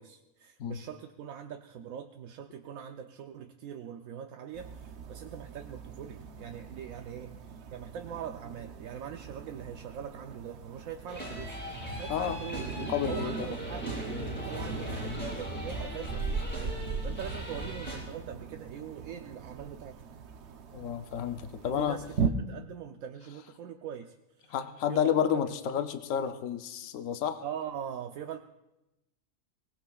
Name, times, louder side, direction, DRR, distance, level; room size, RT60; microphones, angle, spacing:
voice 1, 0.0-11.6 12.0-12.7 13.1-13.9 14.4-20.0 21.6-24.5 24.9-25.5 27.4-28.4, right 8 dB, 85° right, 5 dB, 1.1 m, -42 dB
sound 1, 4.5-22.3, right 5 dB, 60° right, 1.0 m, -39 dB
sound 2, 11.1-18.0, equal, 5° left, 6.2 m, -39 dB
voice 2, 12.8-13.5 14.1-14.3 20.7-22.0 24.5-27.4, left 9 dB, 75° left, 7 dB, 1.1 m, -31 dB
23.0 x 19.5 x 2.3 m, 0.95 s
omnidirectional pair, 1.4 m